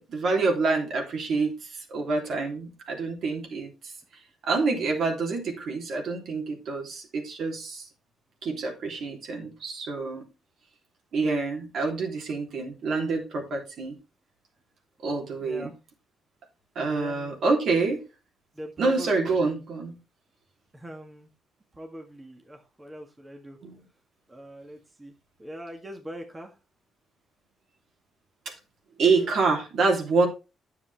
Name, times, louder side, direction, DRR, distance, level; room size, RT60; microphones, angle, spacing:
voice 1, 0.0-3.9 4.4-7.9 8.4-10.2 11.1-14.0 15.0-15.7 16.7-18.1 18.8-20.0 23.6-23.8 28.4-28.5 29.0-30.3, right 4 dB, 65° right, 3.2 m, -27 dB
voice 2, 15.4-15.7 16.9-17.4 18.5-19.6 20.7-21.3 21.7-23.6 24.3-25.1 25.4-26.5 29.2-29.3, equal, 15° right, 1.7 m, -42 dB
9.7 x 7.4 x 3.5 m
cardioid pair, 90°, 0 cm